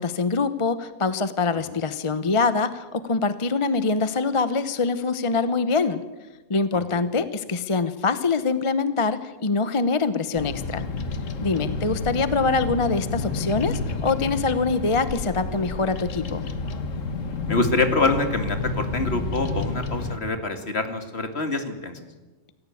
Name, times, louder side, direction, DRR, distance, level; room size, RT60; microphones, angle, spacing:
voice 1, 0.0-6.0 6.5-10.9 11.4-16.4, left 4 dB, 30° left, 12 dB, 0.8 m, -24 dB
Bird vocalization bird call bird song, 10.3-20.2, left 3 dB, 90° left, 1.8 m, -30 dB
voice 2, 17.5-22.0, left 3 dB, 55° left, 7 dB, 2.4 m, -25 dB
27.0 x 14.5 x 8.5 m, 1.2 s
omnidirectional pair, 1.3 m